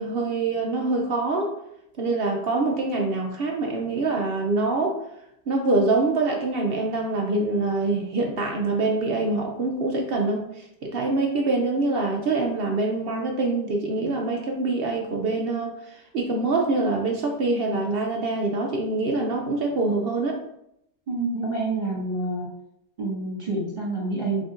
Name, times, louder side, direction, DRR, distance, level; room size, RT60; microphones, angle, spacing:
voice 1, 0.0-1.5 2.0-5.0 5.5-20.4, right 3 dB, 70° right, 1 dB, 0.5 m, -25 dB
voice 2, 21.1-22.5 23.0-24.4, right 2 dB, 30° right, -4 dB, 1.7 m, -27 dB
5.3 x 3.6 x 2.4 m, 0.79 s
omnidirectional pair, 1.6 m